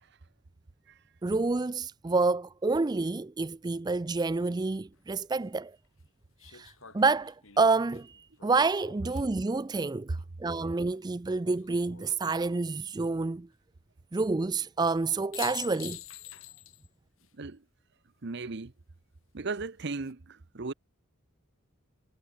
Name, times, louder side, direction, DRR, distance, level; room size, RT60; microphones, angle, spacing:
voice 1, 1.2-5.7 6.5-13.5 14.1-16.0, right 3 dB, 20° right, 0.4 m, -28 dB
sound 1, 4.9-5.0 6.4-9.6 11.4-12.1 14.9-15.0 15.3-16.9 17.2-17.3 19.6-20.1, left 13 dB, 75° left, 6.3 m, -46 dB
voice 2, 18.2-18.7 19.3-20.2 20.5-20.7, right 3 dB, 55° right, 0.8 m, -35 dB
head